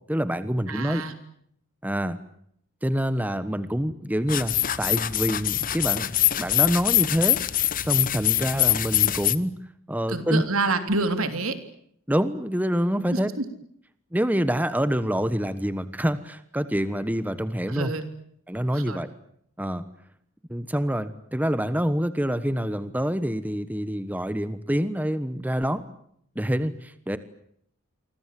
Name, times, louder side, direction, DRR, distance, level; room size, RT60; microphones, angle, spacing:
voice 1, 0.1-1.0 1.8-2.2 2.8-6.1 6.4-9.5 9.9-10.4 12.1-13.3 14.1-17.9 18.5-19.1 19.6-19.9 20.5-25.8 26.3-27.2, equal, 10° right, 13 dB, 1.2 m, -26 dB
voice 2, 0.7-1.1 10.1-11.6 13.1-13.2 17.7-18.1 18.7-19.0, right 3 dB, 85° right, 9 dB, 3.4 m, -27 dB
sound 1, 4.3-9.4, left 13 dB, 40° left, 1.0 m, -24 dB
28.5 x 24.5 x 7.7 m, 0.69 s
head